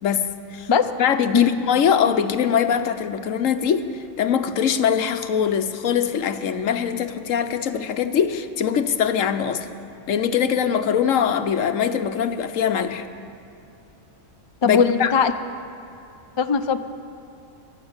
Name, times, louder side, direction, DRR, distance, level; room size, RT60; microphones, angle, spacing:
voice 1, 1.0-9.7 10.1-13.0 14.6-15.1, left 8 dB, 75° left, 9 dB, 1.2 m, -22 dB
voice 2, 14.6-15.3 16.4-16.8, left 6 dB, 45° left, 8 dB, 0.3 m, -19 dB
22.5 x 7.7 x 8.0 m, 2.8 s
omnidirectional pair, 1.4 m